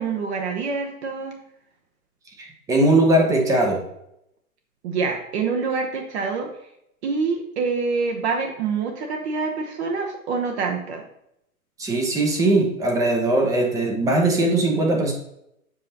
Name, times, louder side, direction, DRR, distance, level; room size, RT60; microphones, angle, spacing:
voice 1, 0.0-1.4 4.8-6.5 7.0-11.0, right 4 dB, 50° right, 2 dB, 1.0 m, -26 dB
voice 2, 2.4-3.8 11.8-15.1, right 2 dB, 10° right, 2 dB, 0.6 m, -20 dB
7.5 x 5.2 x 2.8 m, 0.79 s
hypercardioid pair, 135°, 44 cm